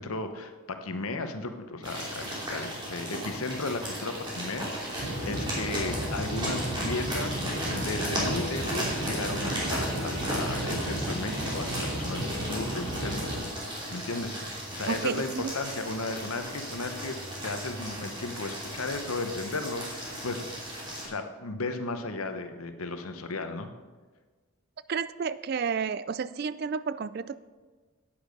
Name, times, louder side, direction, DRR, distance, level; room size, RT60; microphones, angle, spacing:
voice 1, 0.0-4.7 5.2-7.4 7.7-13.3 13.9-14.4 14.7-17.2 17.4-20.4 21.0-23.7, left 3 dB, 90° left, 7 dB, 1.0 m, -35 dB
sound 1, 1.8-21.0, right 1 dB, 20° right, 2.9 m, -35 dB
sound 2, 5.0-13.4, equal, 70° right, 3.5 m, -34 dB
voice 2, 14.9-15.5 24.9-27.4, right 6 dB, 45° right, 16 dB, 0.3 m, -31 dB
10.0 x 8.7 x 5.3 m, 1.4 s
head